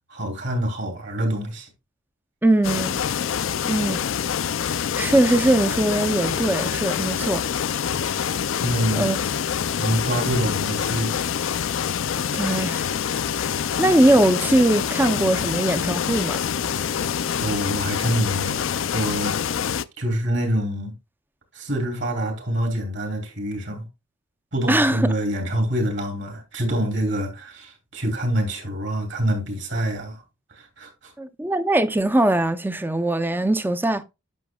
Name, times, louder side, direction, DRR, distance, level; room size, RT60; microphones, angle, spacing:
voice 1, 0.1-1.7 7.9-8.0 8.6-9.1 9.8-11.1 16.7-17.0 17.4-18.6 18.9-19.4 20.0-20.9 21.5-23.8 24.5-30.2 30.5-31.1, equal, 60° right, 3.1 m, -26 dB
voice 2, 2.4-3.0 3.6-4.0 5.0-7.4 9.0-9.2 12.3-12.9 13.8-16.4 24.7-25.1 31.2-34.0, right 1 dB, 10° right, 0.5 m, -21 dB
sound 1, 2.6-19.8, left 8 dB, 70° left, 0.4 m, -26 dB
11.0 x 6.2 x 2.3 m
head